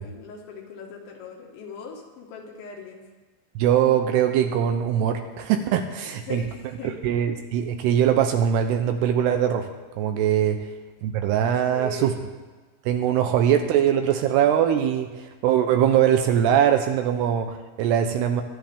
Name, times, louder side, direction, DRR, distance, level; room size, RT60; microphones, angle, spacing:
voice 1, 0.0-3.0 6.0-7.2 10.4-10.5 11.6-12.2 13.2-13.3 14.3-14.4, left 5 dB, 80° left, 0 dB, 4.1 m, -40 dB
voice 2, 3.6-6.4 7.0-9.7 10.0-10.6 11.0-12.1 12.9-15.1 15.4-18.4, right 9 dB, 80° right, 6 dB, 2.6 m, -21 dB
23.5 x 10.0 x 3.6 m, 1.3 s
omnidirectional pair, 5.2 m